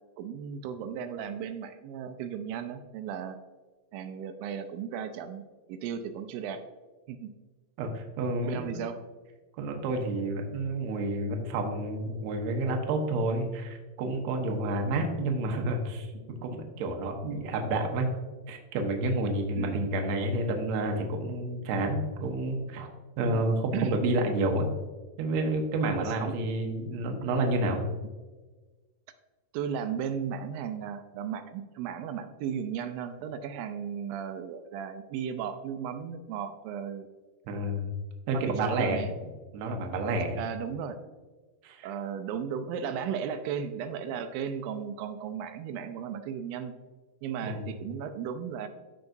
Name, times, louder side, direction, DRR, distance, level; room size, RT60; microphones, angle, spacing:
voice 1, 0.2-3.4 3.9-5.4 5.7-6.6 7.1-7.3 8.4-9.0 19.6-19.9 23.2-23.4 23.7-24.0 25.9-26.3 29.5-37.1 38.3-39.1 40.4-41.0 41.8-46.7 47.2-48.7, right 8 dB, 85° right, 8 dB, 2.4 m, -35 dB
voice 2, 7.8-8.8 9.6-18.1 18.5-22.9 23.2-24.7 25.2-27.8 37.5-37.9 38.3-39.0 39.5-40.4 41.6-41.9 47.4-47.6, right 2 dB, 70° right, 3 dB, 1.8 m, -29 dB
13.5 x 4.7 x 2.6 m, 1.3 s
omnidirectional pair, 4.1 m